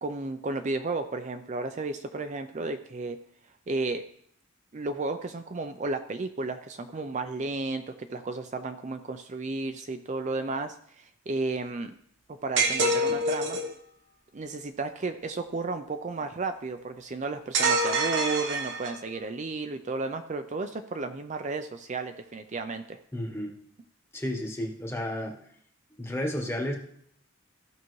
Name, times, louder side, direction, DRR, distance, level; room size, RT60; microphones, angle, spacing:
voice 1, 0.0-3.2 3.7-4.0 4.7-11.9 12.4-13.6 14.3-23.0, right 3 dB, 35° right, 8 dB, 0.5 m, -33 dB
sound 1, 12.6-13.7 17.5-19.1, right 2 dB, 60° right, 1.0 m, -26 dB
voice 2, 23.1-23.5 24.1-25.4 26.0-26.7, left 1 dB, 10° left, 1 dB, 1.2 m, -32 dB
15.0 x 5.7 x 3.1 m, 0.65 s
head